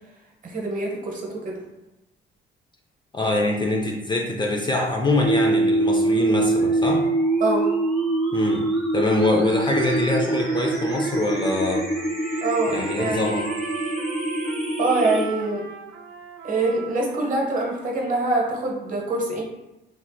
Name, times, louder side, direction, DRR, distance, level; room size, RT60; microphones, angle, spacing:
voice 1, 0.4-1.5 7.4-7.7 12.4-13.3 14.8-15.6 16.4-19.4, right 2 dB, 40° right, -1 dB, 0.9 m, -24 dB
voice 2, 3.1-7.1 8.3-8.7 8.9-11.9 12.7-13.5, left 2 dB, 25° left, 0 dB, 0.4 m, -24 dB
sound 1, 5.2-15.2, right 2 dB, ahead, 0.9 m, -24 dB
Trumpet, 9.4-17.9, right 3 dB, 85° right, 0.4 m, -39 dB
3.2 x 2.8 x 2.2 m, 0.97 s
cardioid pair, 90°, 20 cm